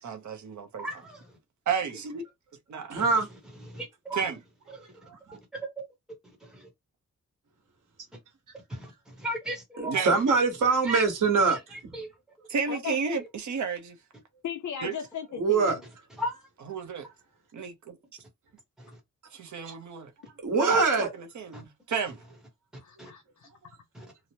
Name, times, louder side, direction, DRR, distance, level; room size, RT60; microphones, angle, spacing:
voice 1, 0.0-0.8 1.7-2.2 2.7-3.0 4.1-4.4 9.9-10.1 12.5-14.0 14.8-14.9 16.6-17.1 17.5-18.0 19.3-20.1 20.5-22.2, right 6 dB, 70° right, 0.8 m, -32 dB
voice 2, 0.8-1.3 3.7-4.3 5.5-5.8 6.4-6.7 8.7-10.0 10.8-11.0 11.5-12.1 16.2-16.4 18.8-18.9 21.5-21.6 23.0-23.1 23.9-24.1, equal, ahead, 0.9 m, -36 dB
voice 3, 2.9-3.3 5.1-5.4 9.8-11.6 15.4-15.8 19.7-19.8 20.4-21.1, right 4 dB, 85° right, 1.3 m, -23 dB
voice 4, 12.7-13.0 14.4-15.8 20.7-20.8 22.8-23.5, left 8 dB, 70° left, 0.6 m, -37 dB
2.9 x 2.0 x 2.8 m
wide cardioid pair, 165°, 31 cm